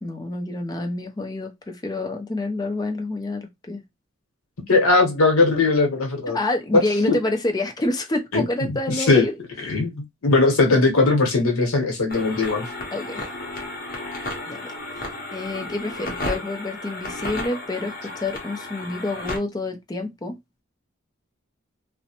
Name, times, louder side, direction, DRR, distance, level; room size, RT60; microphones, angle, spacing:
voice 1, 0.0-3.8 6.3-9.3 9.7-9.8 12.9-13.3 14.5-14.7 15.3-20.4, left 2 dB, 20° left, 0.4 m, -28 dB
voice 2, 4.7-6.4 7.1-7.2 8.3-8.7 9.0-9.2 9.6-12.7, left 3 dB, 85° left, 0.9 m, -19 dB
sound 1, 12.1-19.4, left 2 dB, 40° left, 0.7 m, -33 dB
2.5 x 2.1 x 2.8 m
head